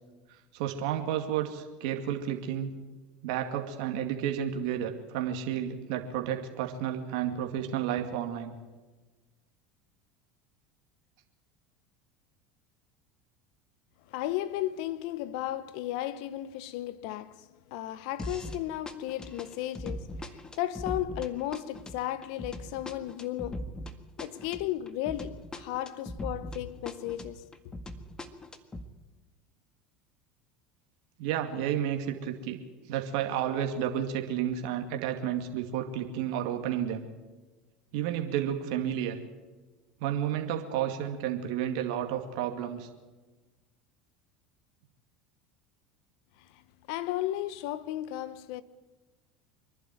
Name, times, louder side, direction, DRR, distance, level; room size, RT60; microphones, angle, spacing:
voice 1, 0.5-2.7 3.2-8.5 31.2-32.6 32.9-37.0 37.9-39.2 40.0-42.9, right 10 dB, 70° right, 2.3 m, -31 dB
voice 2, 14.1-23.8 24.2-27.4 46.4-46.6 46.9-48.6, left 13 dB, 70° left, 1.0 m, -34 dB
sound 1, 18.2-18.6 18.9-26.6 26.9-28.9, left 1 dB, 20° left, 1.8 m, -40 dB
25.0 x 11.5 x 9.2 m
hypercardioid pair, 85°, 4 cm